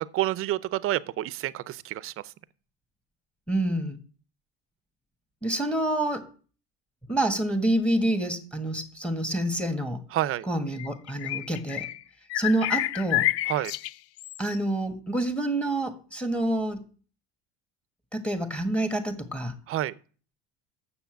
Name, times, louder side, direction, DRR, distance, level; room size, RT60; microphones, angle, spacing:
voice 1, 0.0-2.1 10.1-10.5 13.5-13.7 19.7-19.9, right 14 dB, 45° right, 0.7 m, -28 dB
voice 2, 3.5-4.0 5.4-6.3 7.1-10.0 10.4-11.9 12.3-13.3 14.4-16.9 18.1-19.5, right 1 dB, 5° left, 1.6 m, -27 dB
Blackbird garden, 10.7-12.0 12.3-14.6, left 16 dB, 50° left, 0.4 m, -29 dB
7.0 x 6.8 x 8.0 m
supercardioid pair, 115°, 32 cm